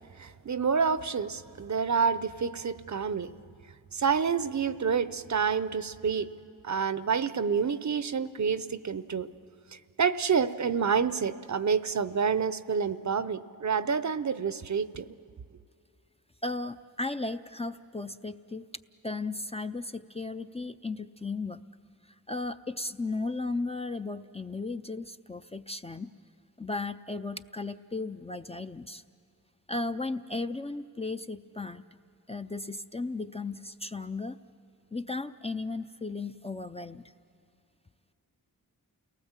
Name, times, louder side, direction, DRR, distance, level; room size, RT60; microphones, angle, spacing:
voice 1, 0.2-3.3 3.9-6.3 6.6-9.3 10.0-15.1, right 6 dB, 50° right, 14 dB, 0.7 m, -28 dB
voice 2, 16.4-18.7 19.0-21.6 22.1-26.1 26.6-29.0 29.7-31.8 32.3-34.4 34.9-37.1, left 3 dB, 15° left, 8 dB, 0.5 m, -35 dB
29.0 x 18.5 x 7.3 m, 2.5 s
cardioid pair, 60°, 38 cm